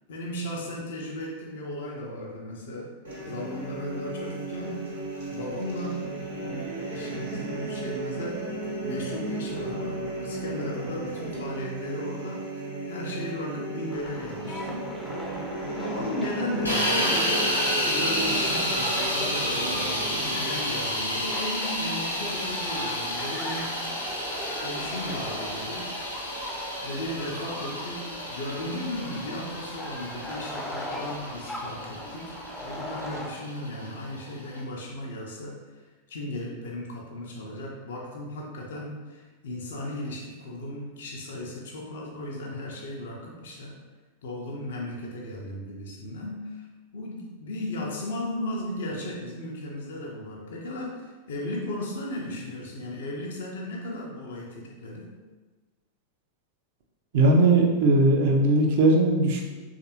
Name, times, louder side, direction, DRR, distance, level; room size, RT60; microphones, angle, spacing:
voice 1, 0.1-2.9 3.2-4.9 5.3-6.2 6.5-8.5 8.8-14.9 15.7-17.4 17.8-23.9 24.6-25.9 26.8-32.4 32.6-35.8 36.1-43.8 44.2-46.6 46.9-55.2, left 1 dB, 60° left, -2 dB, 0.5 m, -35 dB
sound 1, 3.0-20.5, right 2 dB, 70° right, 1.0 m, -35 dB
sound 2, 13.9-33.3, left 1 dB, 5° left, 0.5 m, -39 dB
sound 3, 16.7-34.6, equal, 90° left, 0.8 m, -30 dB
voice 2, 57.1-59.5, right 2 dB, 50° right, 1 dB, 0.5 m, -19 dB
3.2 x 2.5 x 2.8 m, 1.3 s
figure-of-eight pair, 90°, 0 cm